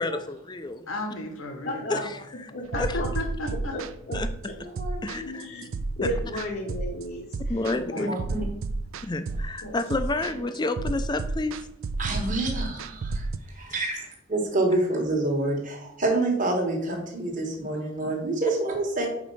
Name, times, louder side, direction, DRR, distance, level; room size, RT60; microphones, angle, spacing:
voice 1, 0.0-0.8 1.9-2.2 2.8-3.0 4.1-4.3 5.0-5.5 6.0-6.4 7.5-8.1 9.1-11.7 12.2-12.4, left 2 dB, 20° left, 10 dB, 0.4 m, -30 dB
voice 2, 0.9-1.9 2.7-3.8 7.5-8.4 9.6-9.8 13.7-14.0, left 2 dB, 80° left, 5 dB, 1.2 m, -35 dB
voice 3, 1.6-2.1 2.5-3.1 3.7-4.2 5.2-7.2 8.0-8.1, left 1 dB, 45° left, 0 dB, 0.8 m, -33 dB
sound 1, 2.7-13.4, right 3 dB, 75° right, 0.4 m, -32 dB
voice 4, 4.6-5.2 8.1-8.4 12.0-19.1, right 2 dB, 40° right, 1 dB, 1.4 m, -28 dB
5.0 x 4.2 x 5.4 m, 0.80 s
head